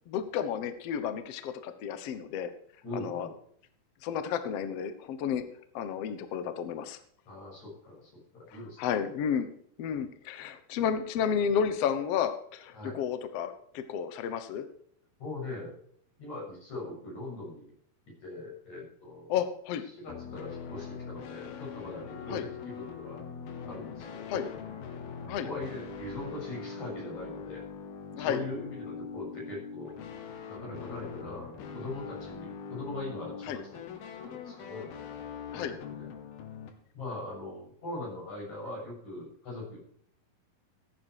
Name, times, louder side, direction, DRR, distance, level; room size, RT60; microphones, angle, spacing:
voice 1, 0.1-2.5 2.9-3.3 4.0-5.4 5.7-7.0 8.8-9.5 9.8-14.6 19.3-19.8 22.3-22.4 24.3-24.5 25.2-25.5 28.1-28.4 33.5-33.6 35.5-35.7, left 8 dB, 65° left, 10 dB, 1.6 m, -32 dB
voice 2, 2.8-3.3 7.3-9.1 12.7-13.0 15.2-15.7 16.2-17.7 18.2-19.3 19.9-23.2 23.6-24.5 25.4-27.6 28.2-30.0 30.5-34.0 34.2-34.9 35.5-36.2 36.9-39.8, left 2 dB, 50° left, -4 dB, 8.7 m, -41 dB
sound 1, 20.1-36.7, left 6 dB, 80° left, 3.4 m, -42 dB
15.0 x 9.7 x 4.8 m, 0.64 s
omnidirectional pair, 4.3 m